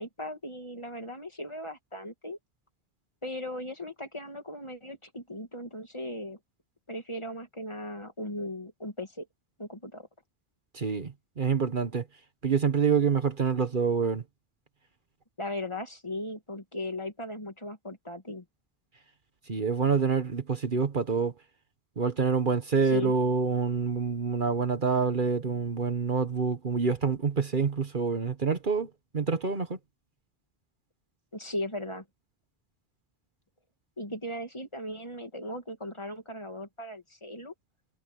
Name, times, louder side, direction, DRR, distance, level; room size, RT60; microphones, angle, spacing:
voice 1, 0.0-2.4 3.2-6.4 6.9-9.3 9.6-10.1 15.4-18.4 22.8-23.1 31.3-32.0 34.0-37.5, left 1 dB, 30° left, 2.5 m, -37 dB
voice 2, 10.7-12.1 12.4-14.2 19.5-21.3 22.0-29.7, right 5 dB, 50° right, 1.4 m, -27 dB
omnidirectional pair, 1.1 m